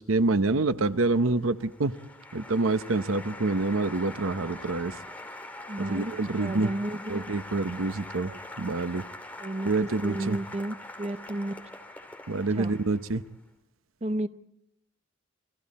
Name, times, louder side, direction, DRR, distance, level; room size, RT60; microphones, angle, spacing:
voice 1, 0.0-1.9 2.3-4.9 5.8-6.7 7.1-8.3 8.6-9.0 9.6-10.4 12.3-13.2, right 3 dB, 75° right, 11 dB, 0.9 m, -27 dB
Applause, 0.8-13.3, left 1 dB, 10° left, 2.4 m, -43 dB
voice 2, 5.7-7.3 8.3-8.4 9.4-11.5 12.6-12.7 14.0-14.3, right 1 dB, 30° right, 10 dB, 0.8 m, -33 dB
29.5 x 24.5 x 4.3 m, 0.82 s
head